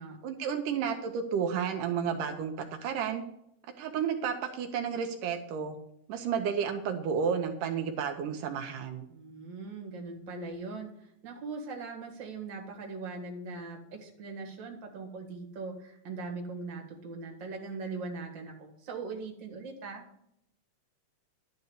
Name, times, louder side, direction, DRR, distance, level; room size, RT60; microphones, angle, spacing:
voice 1, 0.2-3.2 3.8-5.8 6.1-9.1, right 7 dB, 80° right, 5 dB, 2.4 m, -32 dB
voice 2, 9.1-20.0, right 3 dB, 40° right, 1 dB, 2.2 m, -40 dB
12.0 x 4.1 x 8.1 m, 0.74 s
omnidirectional pair, 3.7 m